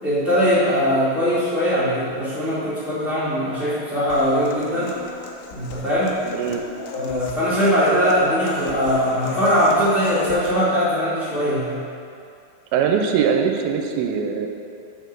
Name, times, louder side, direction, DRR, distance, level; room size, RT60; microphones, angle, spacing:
voice 1, 0.0-5.0 5.5-6.2 6.8-11.8, equal, 25° left, -13 dB, 1.8 m, -21 dB
Human voice / Acoustic guitar, 4.1-10.5, left 5 dB, 85° left, 1.8 m, -38 dB
voice 2, 6.3-6.6 12.7-14.5, right 7 dB, 85° right, 3 dB, 2.4 m, -21 dB
6.5 x 5.4 x 6.6 m, 2.4 s
omnidirectional pair, 4.3 m